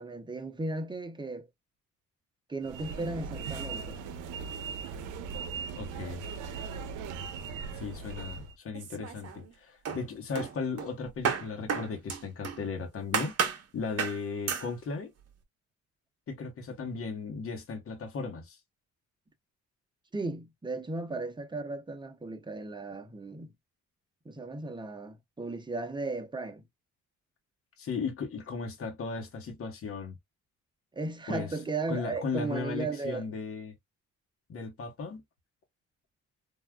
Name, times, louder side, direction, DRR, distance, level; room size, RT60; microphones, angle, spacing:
voice 1, 0.0-1.5 2.5-4.0 20.1-23.5 24.2-26.6 30.9-33.2, right 3 dB, 15° right, 0.8 m, -36 dB
sound 1, 2.6-8.6, right 5 dB, 90° right, 0.5 m, -39 dB
voice 2, 5.7-6.2 7.7-15.1 16.3-18.6 27.8-30.2 31.3-31.5 31.9-33.7 34.5-35.2, left 4 dB, 50° left, 1.0 m, -36 dB
sound 2, 8.7-9.5 9.9-12.7 13.1-13.6 14.0-14.2 14.5-14.7, right 7 dB, 55° right, 0.9 m, -32 dB
3.5 x 2.3 x 2.2 m
cardioid pair, 90°, 30 cm